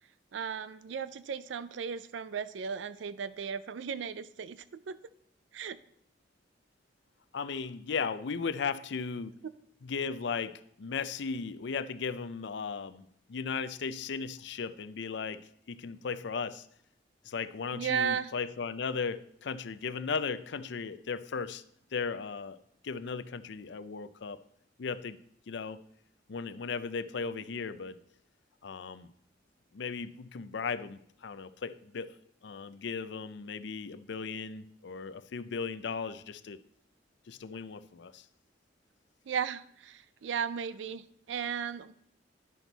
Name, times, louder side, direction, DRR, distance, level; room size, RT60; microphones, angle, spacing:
voice 1, 0.3-5.0 5.5-5.8 17.7-18.3 39.3-41.9, right 7 dB, 75° right, 15 dB, 0.4 m, -35 dB
voice 2, 7.3-9.3 9.8-15.4 15.7-16.6 17.3-21.6 21.9-22.6 22.8-24.4 24.8-25.2 25.5-25.8 26.3-28.0 28.6-29.1 29.7-32.2 32.4-36.6 37.3-38.2, left 5 dB, 70° left, 12 dB, 0.5 m, -36 dB
10.5 x 6.1 x 4.0 m, 0.68 s
head